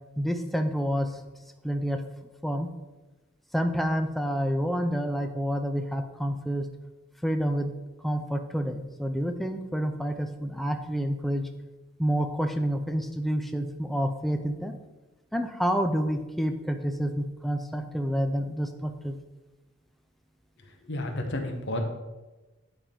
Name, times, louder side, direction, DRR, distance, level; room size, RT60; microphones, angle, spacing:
voice 1, 0.2-1.2 1.6-2.0 2.4-2.7 3.5-6.7 7.2-7.7 8.0-11.5 12.0-14.7 15.3-19.2, equal, ahead, 6 dB, 0.4 m, -28 dB
voice 2, 20.6-21.8, left 1 dB, 60° left, 3 dB, 1.0 m, -32 dB
10.0 x 3.4 x 5.2 m, 1.1 s
head